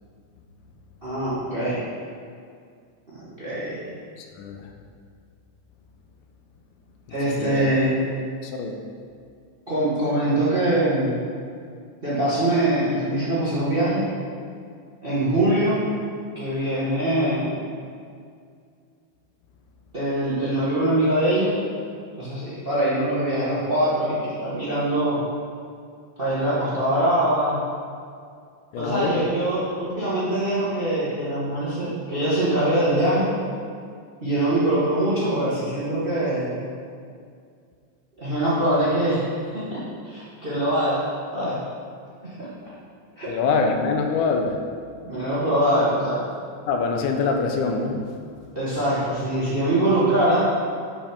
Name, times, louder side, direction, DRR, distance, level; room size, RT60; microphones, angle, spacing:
voice 1, 1.0-1.8 3.4-3.8 7.1-8.0 9.7-11.3 12.0-14.1 15.0-15.8 16.3-17.6 19.9-21.6 22.2-25.2 26.2-27.6 28.8-33.3 34.2-36.6 38.2-41.1 41.3-41.6 42.2-42.5 43.2-43.3 45.0-46.2 48.5-50.5, right 1 dB, 50° right, -9 dB, 0.6 m, -23 dB
voice 2, 4.2-4.7 7.1-7.7 8.4-8.8 28.7-29.2 43.3-44.6 46.7-48.1, left 4 dB, 80° left, 3 dB, 2.1 m, -25 dB
7.2 x 5.6 x 5.1 m, 2.2 s
omnidirectional pair, 3.7 m